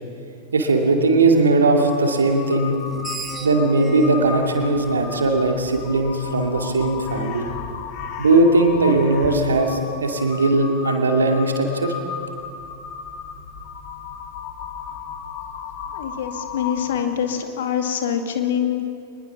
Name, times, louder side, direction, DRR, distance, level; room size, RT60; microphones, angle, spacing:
voice 1, 0.5-2.8 3.4-7.5 8.2-11.9, right 2 dB, 70° right, 3 dB, 2.5 m, -19 dB
Crow, 1.7-17.2, left 6 dB, 40° left, 2.5 m, -35 dB
Screech, 2.7-5.9, right 5 dB, 20° right, 2.0 m, -36 dB
voice 2, 15.9-18.9, left 9 dB, 60° left, 5 dB, 2.1 m, -24 dB
23.5 x 20.5 x 6.1 m, 2.5 s
figure-of-eight pair, 90°, 0 cm